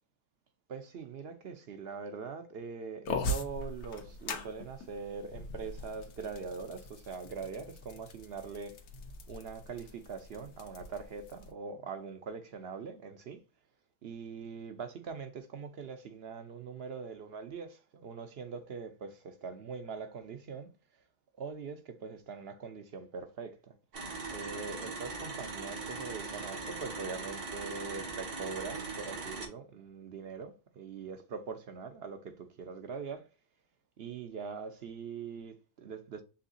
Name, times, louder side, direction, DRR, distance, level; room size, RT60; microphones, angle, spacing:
voice 1, 0.7-8.8 9.3-13.4 14.0-20.7 21.4-23.7 24.3-33.3 34.0-36.2, right 5 dB, 55° right, 0.7 m, -42 dB
sound 1, 3.0-11.5, left 2 dB, 85° left, 1.3 m, -41 dB
sound 2, 23.9-29.5, right 3 dB, 90° right, 2.2 m, -40 dB
5.5 x 3.3 x 2.6 m
omnidirectional pair, 1.6 m